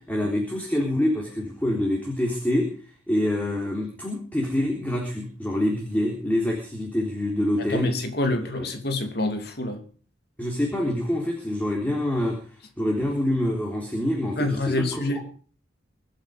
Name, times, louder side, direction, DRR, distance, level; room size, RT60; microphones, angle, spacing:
voice 1, 0.1-2.7 3.1-7.9 8.3-8.7 10.4-12.4 12.8-15.2, left 1 dB, 10° left, 3.6 m, -26 dB
voice 2, 7.6-9.8 14.4-15.2, left 2 dB, 55° left, 2.7 m, -27 dB
24.5 x 9.2 x 5.2 m
head